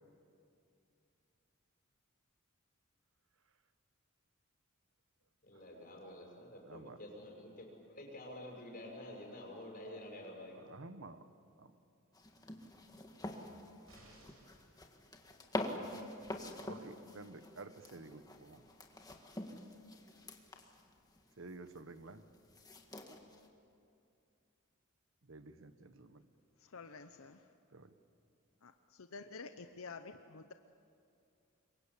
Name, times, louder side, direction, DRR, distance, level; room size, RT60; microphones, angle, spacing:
voice 1, 5.4-10.7, left 1 dB, 40° left, 0 dB, 6.5 m, -49 dB
voice 2, 6.6-7.0 10.5-11.2 11.6-11.7 13.8-13.9 16.6-18.6 21.4-22.3 25.2-26.2 27.7-27.9, right 3 dB, 65° right, 11 dB, 1.1 m, -52 dB
sound 1, 12.1-23.5, left 1 dB, 20° left, 1.8 m, -46 dB
sound 2, 13.9-14.7 16.3-16.4, right 1 dB, 80° right, 6.9 m, -61 dB
voice 3, 26.6-27.5 28.6-30.5, left 4 dB, 75° left, 8 dB, 0.8 m, -50 dB
27.5 x 23.0 x 8.5 m, 2.5 s
head